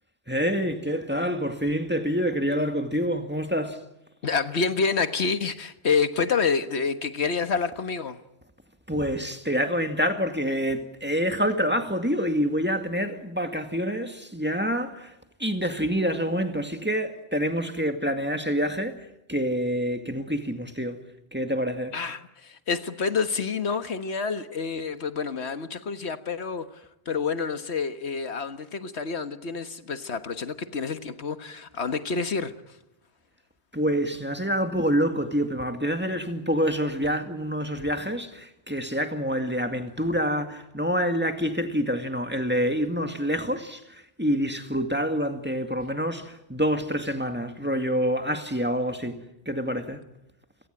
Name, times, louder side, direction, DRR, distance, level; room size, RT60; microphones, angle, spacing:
voice 1, 0.3-3.8 8.9-15.1 15.4-21.0 21.3-21.9 33.7-49.2 49.5-50.0, equal, 10° right, 2.1 m, -27 dB
voice 2, 4.2-8.2 21.9-32.8, left 5 dB, 80° left, 1.7 m, -28 dB
29.5 x 18.0 x 9.0 m
omnidirectional pair, 1.1 m